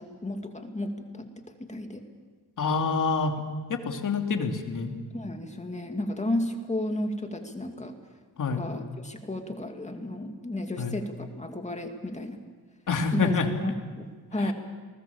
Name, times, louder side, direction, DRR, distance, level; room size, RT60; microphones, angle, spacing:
voice 1, 0.0-2.0 5.1-7.9 8.6-12.4 13.1-14.5, left 1 dB, 15° left, 4 dB, 2.4 m, -33 dB
voice 2, 2.6-3.4 3.7-4.9 8.4-8.6 10.8-10.9 12.9-13.5 14.4-14.5, left 4 dB, 50° left, 4 dB, 2.9 m, -27 dB
28.5 x 20.0 x 7.3 m, 1.4 s
cardioid pair, 100°, 39 cm